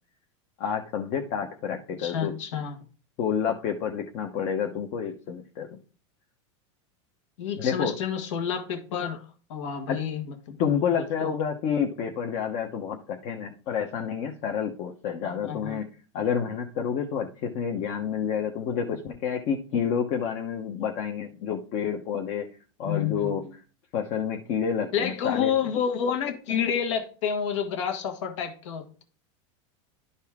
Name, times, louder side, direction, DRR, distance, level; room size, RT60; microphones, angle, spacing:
voice 1, 0.6-2.3 3.2-5.8 7.6-8.0 9.9-10.0 10.6-22.5 22.8-23.4 23.9-25.5, left 7 dB, 45° left, 3 dB, 1.0 m, -29 dB
voice 2, 2.0-2.8 7.4-9.2 9.5-10.6 11.2-11.4 15.2-15.8 22.8-23.3 24.9-29.0, left 7 dB, 75° left, 6 dB, 1.6 m, -29 dB
11.5 x 4.2 x 3.6 m, 0.38 s
supercardioid pair, 135°, 16 cm